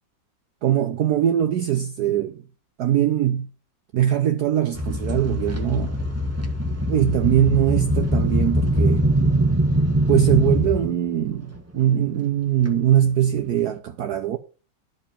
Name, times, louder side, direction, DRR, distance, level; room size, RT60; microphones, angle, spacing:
voice 1, 0.6-2.4 2.8-3.5 3.9-6.0 6.9-9.1 10.1-14.4, right 11 dB, 65° right, 1.2 m, -21 dB
sound 1, 4.7-11.0 11.5-11.7 12.7-12.8 13.5-13.6, right 1 dB, 10° right, 1.2 m, -22 dB
12.5 x 5.1 x 6.8 m
omnidirectional pair, 2.0 m